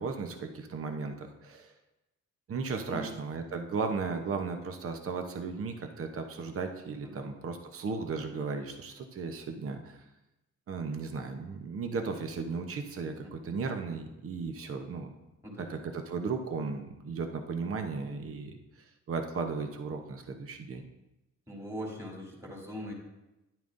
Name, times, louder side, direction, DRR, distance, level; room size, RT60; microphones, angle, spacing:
voice 1, 0.0-1.7 2.5-10.0 10.7-15.1 15.6-18.6 19.1-20.8, right 4 dB, 50° right, 5 dB, 0.9 m, -35 dB
voice 2, 21.5-22.9, equal, 10° right, -3 dB, 3.3 m, -41 dB
10.5 x 9.0 x 2.6 m, 0.96 s
cardioid pair, 90°, 30 cm